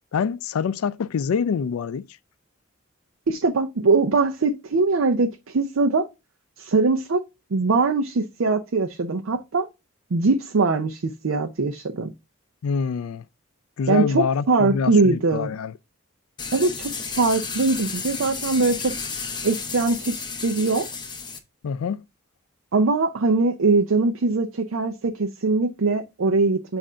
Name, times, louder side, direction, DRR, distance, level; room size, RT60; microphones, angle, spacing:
voice 1, 0.1-2.0 12.6-13.2 13.8-15.7 21.6-22.0, left 6 dB, 90° left, 0.4 m, -25 dB
voice 2, 3.3-6.1 6.6-7.2 7.5-9.7 10.1-12.1 13.9-15.5 16.5-16.9 17.2-18.9 19.4-20.9 22.7-26.8, right 3 dB, 70° right, 0.5 m, -22 dB
sound 1, 16.4-21.4, left 5 dB, 20° left, 0.7 m, -32 dB
7.4 x 2.5 x 5.4 m
head